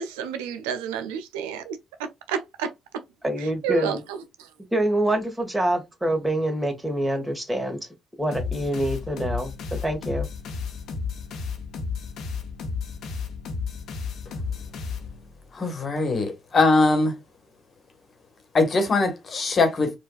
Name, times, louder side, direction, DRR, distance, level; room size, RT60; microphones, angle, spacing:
voice 1, 0.0-1.8 2.3-2.7 3.4-4.2, right 8 dB, 85° right, 0.4 m, -30 dB
voice 2, 3.2-4.0 4.7-7.8 8.2-10.3, right 1 dB, 15° right, 1.6 m, -26 dB
sound 1, 8.3-15.5, left 5 dB, 70° left, 0.9 m, -33 dB
voice 3, 15.5-17.1 18.5-19.9, left 3 dB, 45° left, 1.3 m, -21 dB
4.4 x 2.5 x 2.3 m
hypercardioid pair, 50°, 0 cm